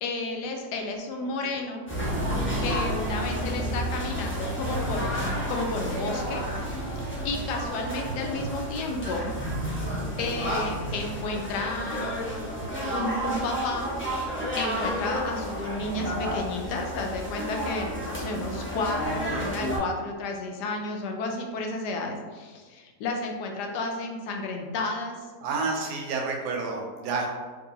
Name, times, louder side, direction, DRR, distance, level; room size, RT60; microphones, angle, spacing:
voice 1, 0.0-1.8 2.6-6.9 7.2-9.3 10.2-12.1 12.9-13.9 14.6-25.2, left 2 dB, 90° left, 2 dB, 1.2 m, -32 dB
sound 1, 1.9-19.8, equal, 15° left, 0.4 m, -31 dB
voice 2, 25.4-27.3, right 4 dB, 80° right, 0 dB, 1.2 m, -30 dB
3.8 x 2.7 x 2.7 m, 1.4 s
omnidirectional pair, 1.7 m